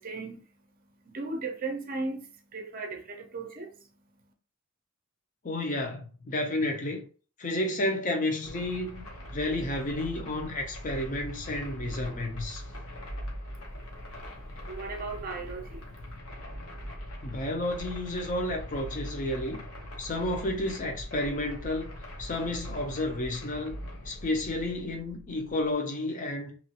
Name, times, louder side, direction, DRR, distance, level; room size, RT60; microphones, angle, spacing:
voice 1, 0.0-4.3 13.5-16.2, right 3 dB, 40° right, 0.5 m, -38 dB
voice 2, 5.4-7.0 7.4-12.6 17.2-19.6 20.0-21.9 22.2-26.5, left 1 dB, 40° left, 0.6 m, -31 dB
sound 1, 8.4-25.7, equal, 85° left, 1.0 m, -41 dB
3.0 x 2.3 x 2.9 m
head